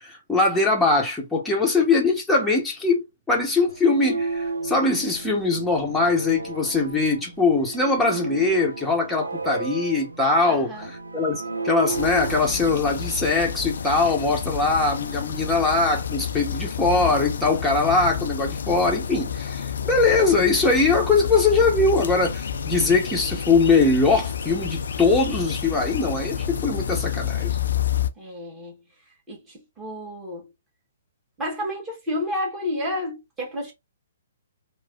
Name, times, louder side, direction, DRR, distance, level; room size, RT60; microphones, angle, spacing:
voice 1, 0.0-10.7 11.1-27.6, left 3 dB, 5° left, 0.9 m, -21 dB
sound 1, 3.7-12.7, right 3 dB, 85° right, 0.4 m, -33 dB
voice 2, 10.4-10.9 28.2-28.8 29.3-30.5 31.4-33.7, left 1 dB, 15° right, 1.4 m, -31 dB
sound 2, 11.9-28.1, left 8 dB, 60° left, 0.4 m, -29 dB
3.1 x 2.1 x 2.5 m
figure-of-eight pair, 125°, 0 cm